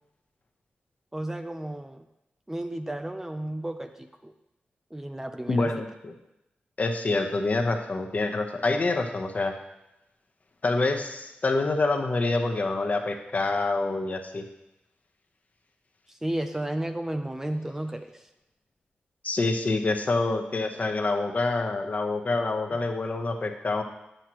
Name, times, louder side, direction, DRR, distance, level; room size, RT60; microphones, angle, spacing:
voice 1, 1.1-2.1 2.5-4.3 4.9-5.8 16.1-18.3 22.7-22.8, right 1 dB, 10° right, 7 dB, 0.4 m, -33 dB
voice 2, 5.5-6.1 6.8-9.5 10.6-14.4 19.2-23.8, left 3 dB, 45° left, 4 dB, 0.9 m, -26 dB
9.8 x 7.7 x 3.0 m, 0.90 s
wide cardioid pair, 95°, 4 cm